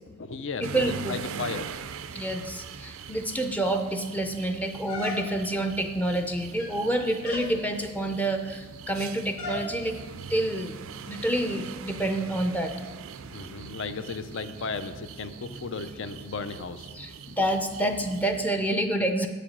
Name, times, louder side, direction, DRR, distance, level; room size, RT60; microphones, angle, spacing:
voice 1, 0.1-1.7 13.3-16.9, left 4 dB, 65° left, 10 dB, 0.6 m, -35 dB
voice 2, 0.6-1.2 2.1-9.9 10.2-10.7 11.1-12.7 16.9-19.3, right 1 dB, 10° left, 5 dB, 0.5 m, -28 dB
sound 1, 0.6-18.5, right 6 dB, 85° right, 0.4 m, -42 dB
sound 2, 4.9-5.6 6.4-6.9 7.2-7.6 9.4-9.7, left 2 dB, 90° left, 1.8 m, -36 dB
7.7 x 5.0 x 7.2 m, 1.4 s
head